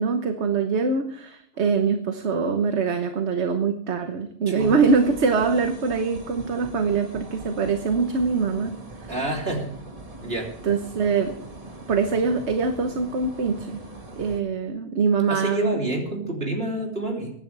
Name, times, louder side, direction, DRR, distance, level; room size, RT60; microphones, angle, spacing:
voice 1, 0.0-9.1 10.6-11.3 11.9-13.8 14.2-15.8, right 5 dB, 75° right, 6 dB, 1.4 m, -23 dB
voice 2, 4.5-4.9 9.1-9.7 10.2-10.5 15.3-17.3, right 1 dB, 60° right, -1 dB, 3.7 m, -28 dB
sound 1, 4.6-14.4, right 2 dB, 30° right, 1.9 m, -41 dB
23.5 x 10.5 x 3.4 m, 0.68 s
omnidirectional pair, 1.2 m